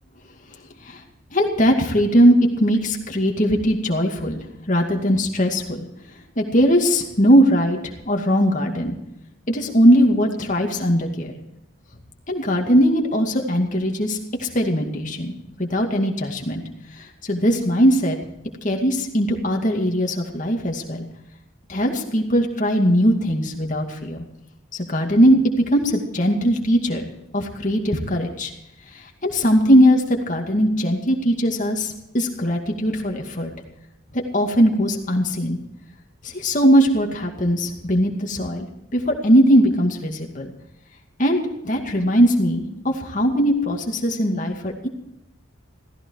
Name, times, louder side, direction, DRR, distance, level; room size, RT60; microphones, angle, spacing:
voice 1, 1.3-5.9 6.4-9.0 9.5-11.3 12.3-15.3 15.6-16.6 17.0-18.2 18.6-21.1 21.7-24.2 24.7-25.4 25.7-28.5 28.9-33.5 34.1-35.6 36.2-40.5 41.2-41.4 41.6-44.9, equal, 40° left, 2 dB, 2.3 m, -20 dB
16.0 x 15.0 x 4.7 m, 0.85 s
head